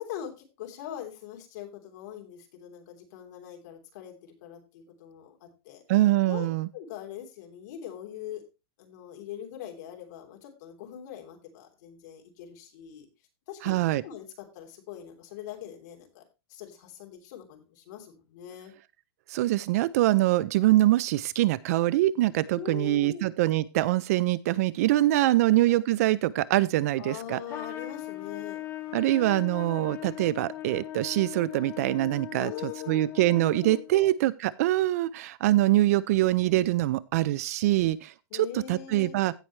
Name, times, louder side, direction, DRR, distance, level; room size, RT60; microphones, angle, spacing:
voice 1, 0.0-5.8 6.3-6.5 6.7-8.4 8.8-13.1 13.5-16.2 16.5-18.7 22.5-23.3 25.2-25.8 27.0-28.6 32.4-33.1 33.4-34.1 38.3-39.2, left 10 dB, 45° left, 2 dB, 3.2 m, -42 dB
voice 2, 5.9-6.7 13.6-14.0 19.3-27.4 28.9-39.3, right 16 dB, 40° right, 19 dB, 0.4 m, -24 dB
Trumpet, 27.5-34.0, left 13 dB, 20° left, 1.4 m, -39 dB
16.0 x 5.7 x 3.1 m, 0.28 s
supercardioid pair, 175°, 13 cm